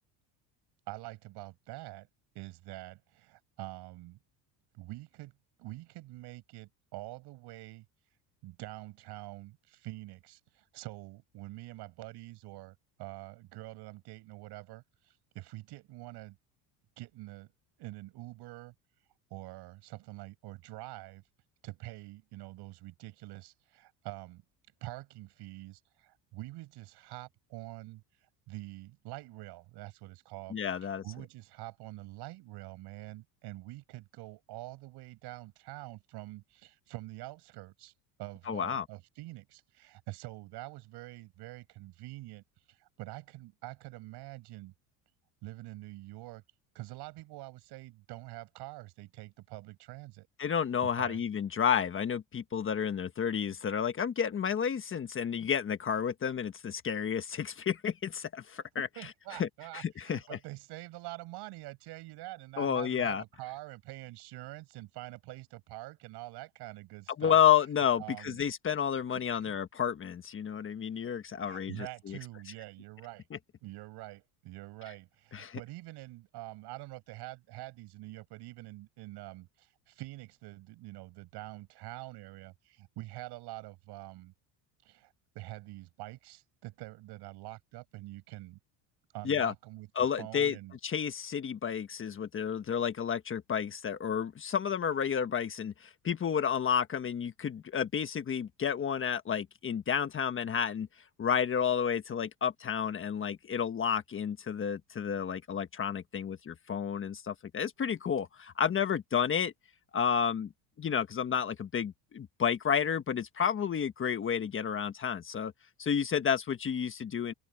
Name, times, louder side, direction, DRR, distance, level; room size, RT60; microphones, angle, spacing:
voice 1, 0.9-2.1 2.3-4.2 4.7-5.3 5.6-7.9 8.4-16.4 17.0-17.5 17.8-18.7 19.3-21.2 21.6-24.4 24.8-28.0 28.5-30.6 30.8-37.9 38.2-44.7 45.4-46.4 46.7-50.3 50.8-51.2 58.8-67.4 68.0-68.4 69.1-69.6 71.4-73.2 73.6-84.3 84.8-88.6 89.1-89.9 90.2-90.8, right 18 dB, 65° right, 6.4 m, -46 dB
voice 2, 30.5-31.0 38.5-38.8 50.4-58.9 59.4-59.5 59.7-60.2 62.6-63.2 67.2-72.2 75.3-75.6 89.2-89.5 89.9-90.6 90.8-100.9 101.2-109.5 109.9-110.5 110.8-115.5 115.8-117.3, left 8 dB, 30° left, 1.4 m, -31 dB
open air
cardioid pair, 130°, 43 cm